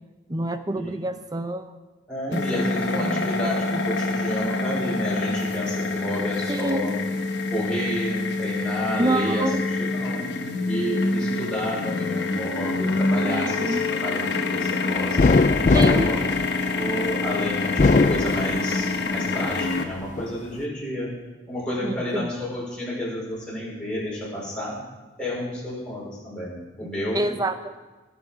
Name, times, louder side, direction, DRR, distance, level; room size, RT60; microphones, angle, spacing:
voice 1, 0.3-1.7 2.3-3.3 3.7-3.8 6.5-6.9 9.0-9.6 13.3-13.8 15.7-16.1 21.8-22.3 26.8-27.8, right 1 dB, 20° right, 9 dB, 0.7 m, -28 dB
voice 2, 2.1-7.0 7.5-9.5 9.8-10.3 10.7-14.2 14.5-15.3 15.8-16.2 16.7-21.1 21.5-24.8 25.2-27.3, equal, 5° left, -6 dB, 4.9 m, -31 dB
sound 1, 2.3-19.8, left 3 dB, 70° left, 1.2 m, -26 dB
sound 2, 15.2-17.1 17.6-19.0 19.4-20.3, left 3 dB, 40° left, 0.4 m, -20 dB
18.5 x 7.1 x 5.7 m, 1.2 s
head